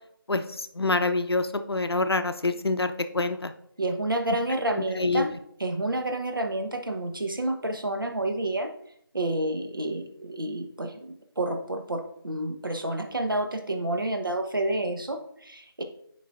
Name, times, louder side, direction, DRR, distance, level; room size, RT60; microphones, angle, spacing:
voice 1, 0.3-3.5 5.0-5.3, left 3 dB, 85° left, 9 dB, 0.7 m, -26 dB
voice 2, 3.8-5.3 5.6-8.7 9.1-11.1 11.4-15.8, right 1 dB, 60° right, 4 dB, 1.1 m, -29 dB
8.5 x 5.1 x 2.6 m, 0.70 s
figure-of-eight pair, 175°, 13 cm